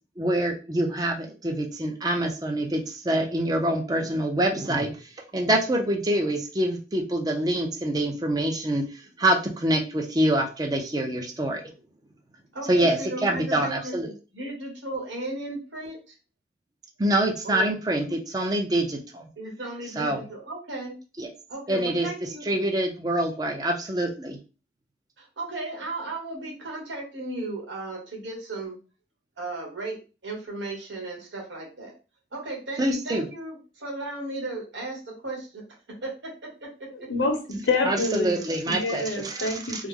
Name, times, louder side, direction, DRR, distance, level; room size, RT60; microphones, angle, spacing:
voice 1, 0.2-4.9 5.3-8.8 9.2-11.6 12.7-13.0 13.2-14.1 17.0-19.2 20.0-20.2 21.2-21.3 21.7-22.1 22.5-24.4 32.8-33.2 37.9-39.8, right 1 dB, 20° right, 2 dB, 0.5 m, -25 dB
voice 2, 12.5-16.1 17.4-17.7 19.4-20.9 21.5-22.4 25.2-28.8 29.4-30.0 30.2-31.9 32.3-35.6 36.0-36.3 36.6-36.7, right 2 dB, 80° right, -1 dB, 1.3 m, -35 dB
voice 3, 36.9-39.9, left 3 dB, 75° left, 4 dB, 0.8 m, -27 dB
3.2 x 2.0 x 3.6 m, 0.33 s
head